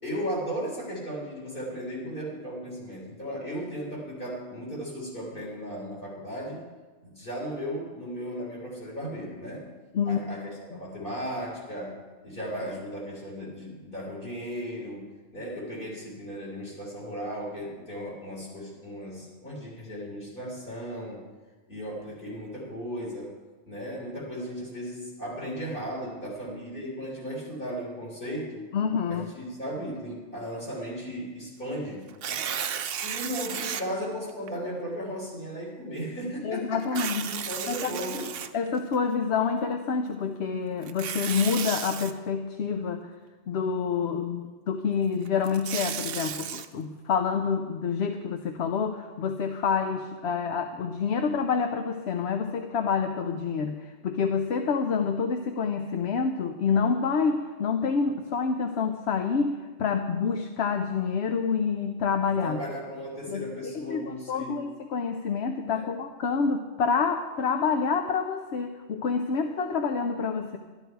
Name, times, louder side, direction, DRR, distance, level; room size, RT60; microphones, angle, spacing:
voice 1, 0.0-6.6 7.0-9.6 10.1-15.0 15.3-21.2 21.7-23.3 23.7-28.7 29.1-32.0 33.0-38.3 62.4-64.6 65.7-65.9, equal, 45° left, -5 dB, 3.9 m, -36 dB
voice 2, 28.7-29.3 36.4-37.3 37.7-43.0 43.5-62.6 63.3-70.6, left 5 dB, 65° left, 6 dB, 0.9 m, -28 dB
Tearing, 32.1-33.8 34.5-34.6 36.8-38.9 40.8-42.1 45.3-46.7, right 8 dB, 60° right, 0.7 m, -33 dB
12.5 x 11.5 x 4.6 m, 1.3 s
omnidirectional pair, 1.3 m